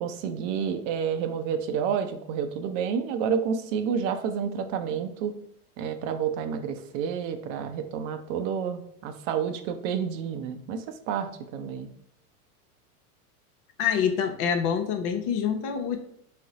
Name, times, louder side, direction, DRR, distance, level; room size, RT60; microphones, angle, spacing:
voice 1, 0.0-5.3 5.8-11.9, right 7 dB, 55° right, 8 dB, 0.6 m, -29 dB
voice 2, 13.8-16.0, left 7 dB, 45° left, 7 dB, 0.6 m, -26 dB
4.1 x 2.0 x 3.9 m, 0.74 s
hypercardioid pair, 100°, 46 cm